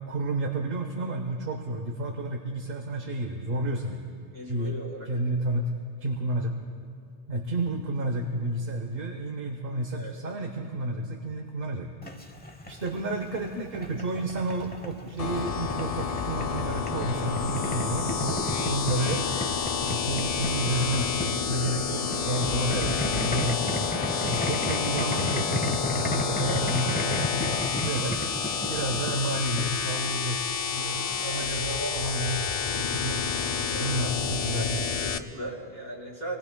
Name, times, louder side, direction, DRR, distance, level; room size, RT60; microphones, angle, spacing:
voice 1, 0.1-4.0 4.5-4.7 5.1-5.7 6.0-6.5 7.3-11.9 12.7-19.3 19.8-23.6 24.2-28.2 28.7-33.2 33.8-34.8, right 1 dB, 60° right, 4 dB, 1.1 m, -31 dB
voice 2, 4.3-5.1 9.9-10.1 21.6-21.8 24.1-24.3 31.2-32.0 33.7-33.9 35.0-36.4, right 1 dB, 45° right, -5 dB, 3.5 m, -38 dB
Boiling, 12.0-30.1, left 1 dB, 10° left, 0.7 m, -35 dB
sound 1, 15.2-35.2, left 6 dB, 50° left, 0.5 m, -29 dB
27.5 x 19.5 x 2.2 m, 2.4 s
omnidirectional pair, 1.0 m